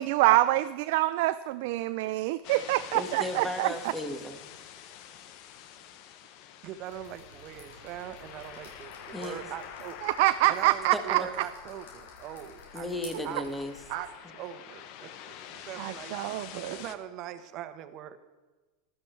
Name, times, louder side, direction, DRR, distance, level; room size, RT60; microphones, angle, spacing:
voice 1, 0.0-3.7 10.0-11.2 13.9-14.0 15.8-16.8, right 17 dB, 65° right, 11 dB, 0.4 m, -26 dB
sound 1, 2.4-17.0, left 10 dB, 60° left, 1.0 m, -47 dB
voice 2, 2.9-4.4 9.1-9.4 10.9-11.3 12.7-13.7, left 1 dB, 5° left, 6 dB, 1.9 m, -35 dB
voice 3, 6.6-10.0 10.5-12.9 13.2-13.4 13.9-16.1 16.7-18.2, right 11 dB, 50° right, 10 dB, 1.3 m, -41 dB
Drip, 6.8-14.0, left 2 dB, 85° left, 4.3 m, -53 dB
14.0 x 12.5 x 4.6 m, 1.2 s
hypercardioid pair, 110°, 0 cm